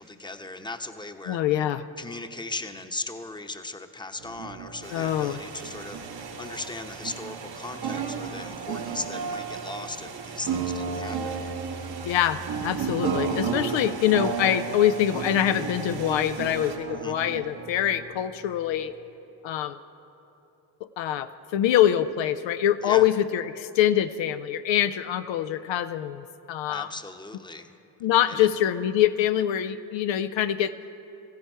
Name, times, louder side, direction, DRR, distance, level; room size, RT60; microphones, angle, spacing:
voice 1, 0.0-1.7 2.0-11.5 16.9-17.2 22.8-23.1 26.7-27.7 28.3-28.5, left 2 dB, 10° left, 7 dB, 0.9 m, -38 dB
voice 2, 1.3-1.8 4.9-5.4 12.0-18.9 19.4-19.8 21.0-26.9 28.0-30.7, left 11 dB, 70° left, 10 dB, 0.6 m, -24 dB
sound 1, 4.2-18.9, right 6 dB, 50° right, 1.1 m, -34 dB
sound 2, 4.8-16.8, right 5 dB, 85° right, 2.3 m, -43 dB
15.5 x 15.5 x 4.5 m, 2.9 s
supercardioid pair, 50°, 47 cm